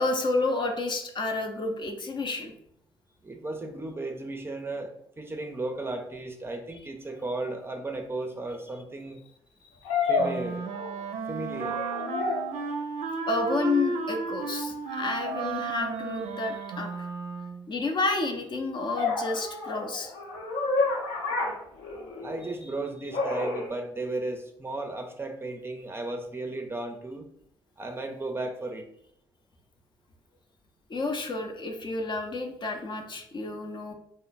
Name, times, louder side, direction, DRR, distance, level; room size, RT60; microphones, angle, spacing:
voice 1, 0.0-2.5 13.3-17.1 17.7-20.1 30.9-33.9, left 3 dB, 40° left, 4 dB, 0.6 m, -30 dB
voice 2, 3.2-9.2 10.1-10.7 11.3-11.8 22.2-27.3 27.8-28.9, right 2 dB, 20° right, 4 dB, 0.5 m, -35 dB
sound 1, 7.5-7.6 9.8-11.2 11.5-12.6 15.2-15.5 19.0-22.4 23.1-23.7, left 3 dB, 70° left, 0.9 m, -30 dB
Wind instrument woodwind instrument, 10.2-17.7, right 5 dB, 70° right, 0.4 m, -34 dB
3.1 x 2.0 x 3.9 m, 0.72 s
hypercardioid pair, 50°, 12 cm